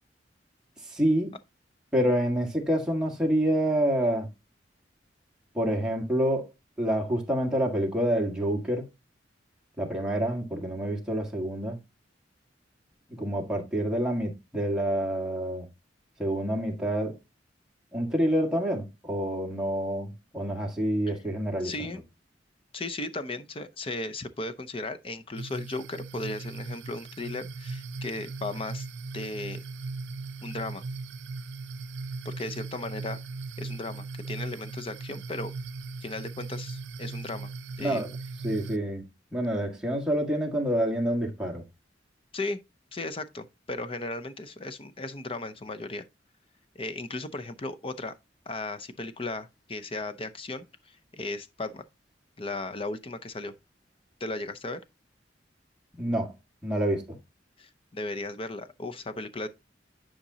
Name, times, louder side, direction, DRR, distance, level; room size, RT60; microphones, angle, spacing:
voice 1, 0.9-1.3 1.9-4.3 5.5-6.5 6.8-8.9 9.8-11.8 13.2-15.7 16.2-17.2 17.9-22.0 37.8-38.1 38.4-41.6 56.0-56.3 56.6-57.0, right 1 dB, 5° right, 1.6 m, -27 dB
voice 2, 21.6-22.0 22.7-28.9 29.1-29.6 30.4-30.8 32.2-33.2 33.6-35.5 36.0-37.5 37.8-38.0 42.3-42.6 42.9-46.1 46.7-48.1 48.5-51.8 52.4-53.5 54.2-54.8 57.6-59.5, left 2 dB, 30° left, 0.6 m, -36 dB
sound 1, 25.4-38.8, right 3 dB, 75° right, 0.6 m, -38 dB
10.0 x 5.1 x 2.7 m
head